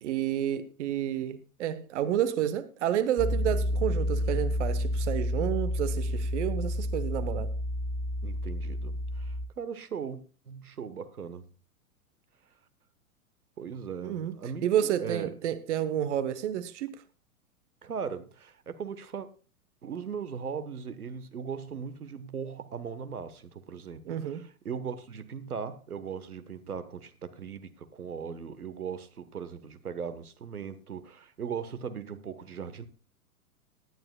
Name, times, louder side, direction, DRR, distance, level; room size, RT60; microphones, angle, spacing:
voice 1, 0.0-7.5 14.0-14.3 14.6-16.9 24.0-24.4, right 10 dB, 50° right, 1.1 m, -30 dB
Piano, 3.2-9.5, left 1 dB, 20° left, 1.0 m, -30 dB
voice 2, 8.2-10.2 10.5-11.4 13.6-15.3 17.8-19.3 19.8-32.9, right 6 dB, 75° right, 1.3 m, -38 dB
19.0 x 11.0 x 2.3 m
figure-of-eight pair, 105°, 44 cm